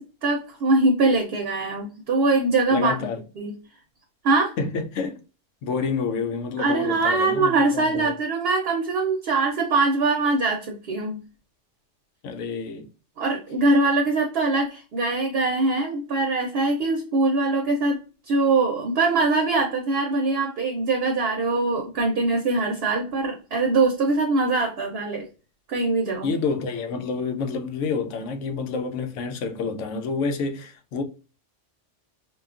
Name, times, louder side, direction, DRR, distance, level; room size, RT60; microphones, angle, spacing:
voice 1, 0.2-3.1 3.4-3.5 4.2-4.5 6.6-11.2 13.2-18.0 18.3-25.3 25.7-26.3, right 3 dB, 60° right, 0.8 m, -22 dB
voice 2, 2.7-3.2 4.6-5.2 5.6-8.1 12.2-12.9 26.2-31.0, left 4 dB, 85° left, 0.9 m, -28 dB
3.6 x 2.3 x 2.4 m
omnidirectional pair, 1.3 m